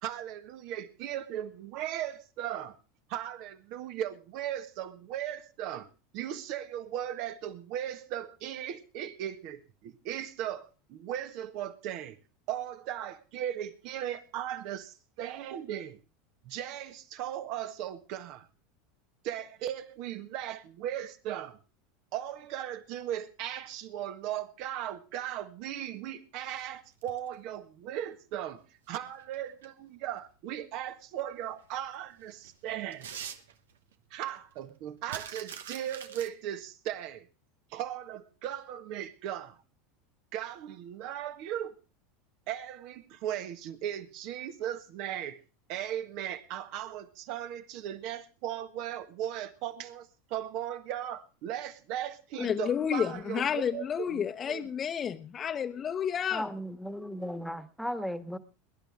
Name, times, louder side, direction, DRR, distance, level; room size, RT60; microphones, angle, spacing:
voice 1, 0.0-2.8 3.1-12.2 12.5-16.0 16.4-18.5 19.2-21.6 22.1-33.1 34.1-37.3 37.7-39.6 40.3-41.8 42.5-45.4 45.7-53.8 54.1-54.6, right 11 dB, 60° right, 1.5 m, -37 dB
sound 1, 26.4-27.3 29.0-29.7 30.2-30.3 31.6-31.7 32.1-33.9 34.3-34.4 34.6-36.3, right 8 dB, 85° right, 1.1 m, -44 dB
voice 2, 52.4-56.5, left 8 dB, 35° left, 0.9 m, -31 dB
voice 3, 56.3-58.4, equal, ahead, 1.5 m, -36 dB
21.5 x 11.0 x 3.6 m
hypercardioid pair, 95°, 0 cm